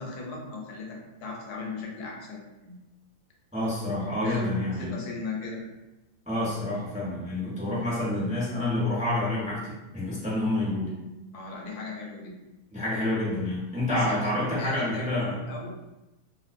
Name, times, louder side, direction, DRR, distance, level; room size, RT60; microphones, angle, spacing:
voice 1, 0.0-2.8 4.2-4.4 4.8-5.6 11.3-12.3 13.9-15.7, left 3 dB, 70° left, -1 dB, 1.2 m, -38 dB
voice 2, 3.5-5.0 6.3-10.9 12.7-15.4, left 1 dB, 10° right, -7 dB, 0.4 m, -28 dB
3.1 x 2.9 x 2.5 m, 1.0 s
omnidirectional pair, 1.8 m